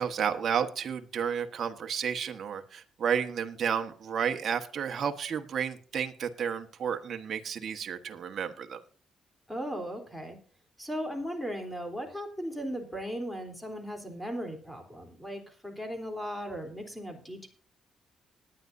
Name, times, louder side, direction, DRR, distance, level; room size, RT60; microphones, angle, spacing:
voice 1, 0.0-8.8, right 7 dB, 55° right, 5 dB, 1.4 m, -32 dB
voice 2, 9.5-10.4 10.8-17.5, equal, 5° left, 4 dB, 3.5 m, -37 dB
19.5 x 9.7 x 2.7 m, 0.43 s
cardioid pair, 90°, 0 cm